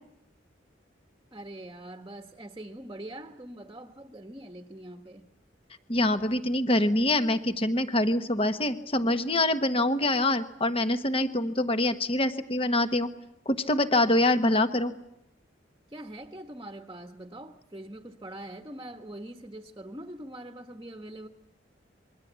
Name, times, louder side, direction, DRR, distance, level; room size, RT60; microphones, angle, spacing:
voice 1, 1.3-5.3 15.9-21.3, right 1 dB, 20° right, 5 dB, 1.2 m, -43 dB
voice 2, 5.9-13.1 13.4-14.9, left 1 dB, 30° left, 9 dB, 1.3 m, -25 dB
27.0 x 22.5 x 8.2 m, 0.81 s
head